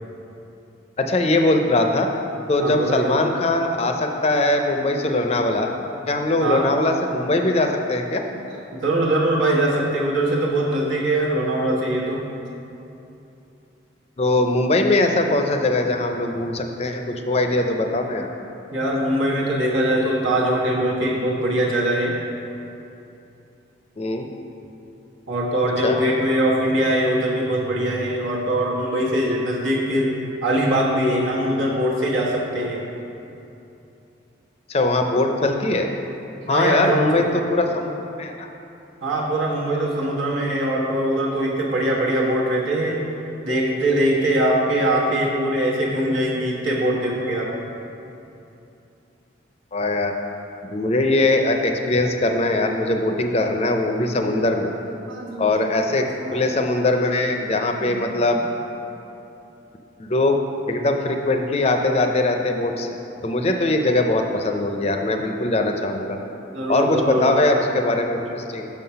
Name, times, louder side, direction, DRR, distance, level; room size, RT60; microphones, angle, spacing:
voice 1, 1.0-2.1 2.5-5.7 6.1-8.2 14.2-18.3 24.0-24.3 25.8-26.0 34.7-35.9 36.5-37.9 38.2-38.5 49.7-50.2 50.7-54.7 55.4-58.4 60.0-60.4 60.7-62.9 63.2-66.2 66.7-68.7, left 2 dB, 30° left, 4 dB, 0.5 m, -21 dB
voice 2, 2.6-3.2 6.4-6.7 8.5-12.2 18.7-22.2 25.3-30.1 30.4-32.8 36.5-37.3 39.0-43.0 43.4-47.5 54.4-54.5 54.9-55.7 56.2-56.4 56.7-56.9 57.7-58.3 66.5-67.4, right 1 dB, 90° right, -4 dB, 1.2 m, -22 dB
5.9 x 5.6 x 5.6 m, 2.9 s
head